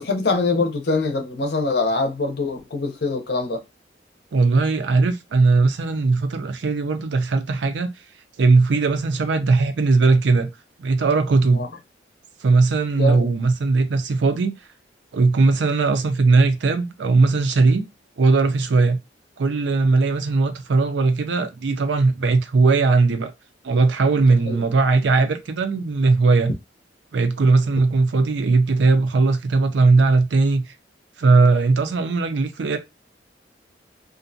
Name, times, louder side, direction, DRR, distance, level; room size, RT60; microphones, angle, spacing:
voice 1, 0.0-3.6 11.5-11.7 13.0-13.3 24.5-24.6, left 3 dB, 60° left, 0.6 m, -23 dB
voice 2, 4.3-7.9 8.4-10.5 10.8-11.6 12.4-14.5 15.1-17.9 18.2-19.0 19.4-23.3 23.6-26.5 27.1-30.6 31.2-32.8, right 3 dB, 80° right, 0.5 m, -18 dB
2.5 x 2.2 x 2.5 m
head